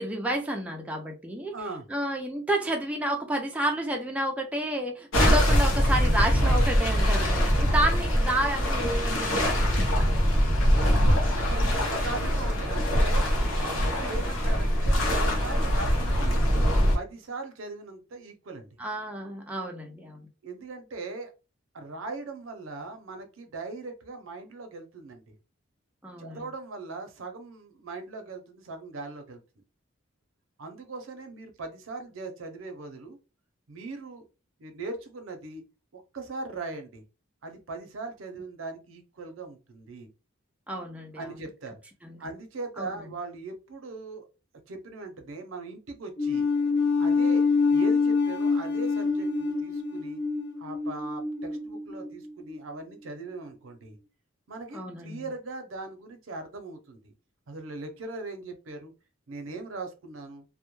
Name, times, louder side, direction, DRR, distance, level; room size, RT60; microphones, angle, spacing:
voice 1, 0.0-1.5 1.9-10.1 18.8-20.3 26.0-26.4 40.7-41.3 42.0-42.2 42.8-42.9 54.7-55.2, right 1 dB, 5° right, 0.4 m, -30 dB
voice 2, 1.5-1.8 10.3-10.4 10.9-13.2 13.6-16.4 16.9-18.7 20.4-21.3 21.7-25.3 26.2-29.4 30.6-33.2 33.7-34.3 34.6-35.6 35.9-37.0 37.4-40.1 41.2-41.8 42.2-44.2 44.7-46.5 47.0-47.4 47.7-50.2 50.6-54.0 54.5-57.1 57.5-58.9 59.3-60.4, right 3 dB, 80° right, 0.6 m, -39 dB
sound 1, 5.1-17.0, equal, 85° left, 0.7 m, -23 dB
sound 2, 46.2-52.6, left 4 dB, 55° left, 0.5 m, -26 dB
2.1 x 2.1 x 3.0 m
head